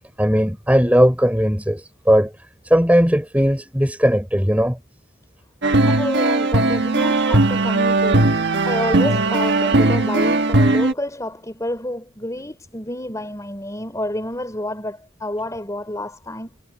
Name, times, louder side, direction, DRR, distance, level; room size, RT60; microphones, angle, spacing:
voice 1, 0.2-2.3 2.6-4.8, equal, 5° right, 6.6 m, -17 dB
sound 1, 5.6-10.9, right 2 dB, 55° right, 1.4 m, -18 dB
voice 2, 5.8-16.5, left 1 dB, 15° left, 4.1 m, -29 dB
head